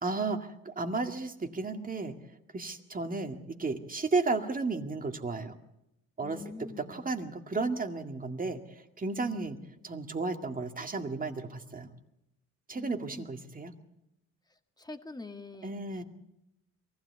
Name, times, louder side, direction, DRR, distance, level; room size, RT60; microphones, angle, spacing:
voice 1, 0.0-2.1 2.5-5.6 6.2-8.6 9.0-9.6 9.8-11.9 12.7-13.7 15.6-16.0, right 3 dB, 30° right, 6 dB, 2.1 m, -33 dB
voice 2, 6.2-7.0 9.2-9.6 12.7-13.4 14.8-16.0, left 3 dB, 15° left, 6 dB, 1.9 m, -45 dB
23.0 x 15.5 x 8.3 m, 0.86 s
cardioid pair, 90°, 30 cm